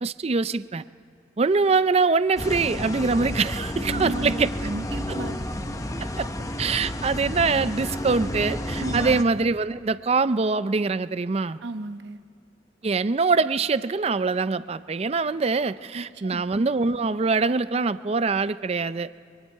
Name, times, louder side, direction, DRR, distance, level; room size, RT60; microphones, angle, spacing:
voice 1, 0.0-0.8 1.4-4.5 5.1-5.2 6.2-6.3 6.6-11.6 12.8-19.1, right 4 dB, 35° right, 14 dB, 0.4 m, -24 dB
sound 1, 2.4-9.2, left 1 dB, 20° left, 0.8 m, -31 dB
voice 2, 3.9-5.4 8.8-9.2 11.6-12.2 15.9-16.4, right 2 dB, 80° right, 7 dB, 1.1 m, -34 dB
28.0 x 24.0 x 4.6 m, 2.1 s
head